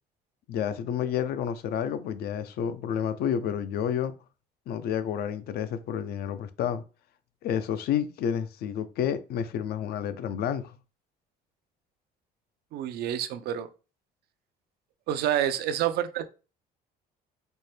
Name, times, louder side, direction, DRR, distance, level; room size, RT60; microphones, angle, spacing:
voice 1, 0.5-4.1 4.7-6.8 7.4-10.7, left 9 dB, 70° left, 0.5 m, -30 dB
voice 2, 12.7-13.7 15.1-16.3, right 11 dB, 75° right, 0.5 m, -28 dB
4.4 x 2.1 x 3.3 m
cardioid pair, 110°, 17 cm